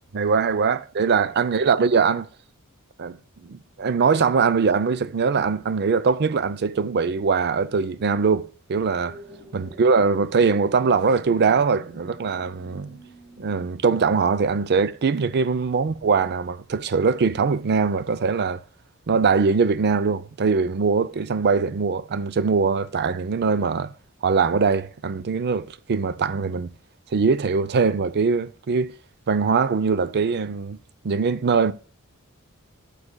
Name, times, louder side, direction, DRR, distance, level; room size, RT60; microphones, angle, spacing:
voice 1, 0.1-2.3 3.0-3.2 3.4-9.2 9.5-13.0 13.4-18.6 19.1-23.9 24.2-26.7 27.1-28.9 29.3-30.8 31.0-31.7, right 5 dB, 50° right, 0.5 m, -22 dB
sound 1, 9.0-15.6, right 2 dB, 5° right, 2.1 m, -48 dB
9.7 x 6.7 x 2.2 m
head